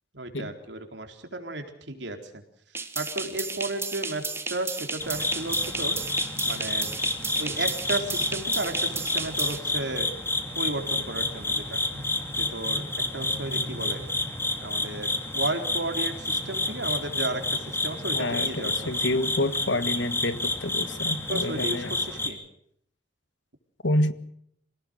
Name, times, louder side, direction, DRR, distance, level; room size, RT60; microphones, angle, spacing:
voice 1, 0.1-2.4 3.0-6.0 6.5-6.9 7.4-10.1 10.6-11.8 12.3-12.8 13.1-14.0 14.6-19.0 21.3-22.4, right 2 dB, 75° right, 5 dB, 4.1 m, -33 dB
sound 1, 2.7-9.6, right 4 dB, 15° right, 1.7 m, -34 dB
sound 2, 5.0-22.3, left 2 dB, 15° left, 2.9 m, -29 dB
voice 2, 18.1-21.9 23.8-24.1, left 1 dB, 85° left, 13 dB, 1.7 m, -28 dB
27.0 x 18.0 x 6.6 m, 0.71 s
head